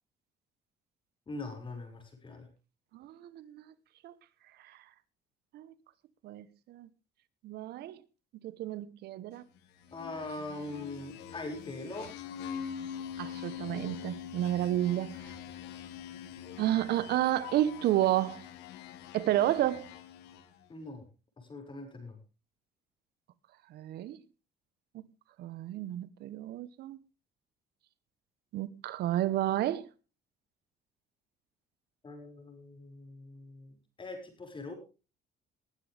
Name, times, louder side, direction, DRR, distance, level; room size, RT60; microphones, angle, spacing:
voice 1, 1.3-2.5 9.9-12.1 20.7-21.0 21.4-22.2 32.0-34.7, left 2 dB, 30° left, 5.9 m, -42 dB
voice 2, 2.9-3.7 4.0-4.1 4.6-4.8 5.5-5.7 6.2-6.9 7.4-8.0 8.4-9.4 13.2-15.3 16.6-18.5 19.1-19.9 23.7-24.2 24.9-25.0 25.4-27.0 28.5-29.9, right 13 dB, 70° right, 1.1 m, -31 dB
sound 1, 9.8-20.6, left 8 dB, 90° left, 2.0 m, -44 dB
19.5 x 11.5 x 3.5 m
cardioid pair, 110°, 17 cm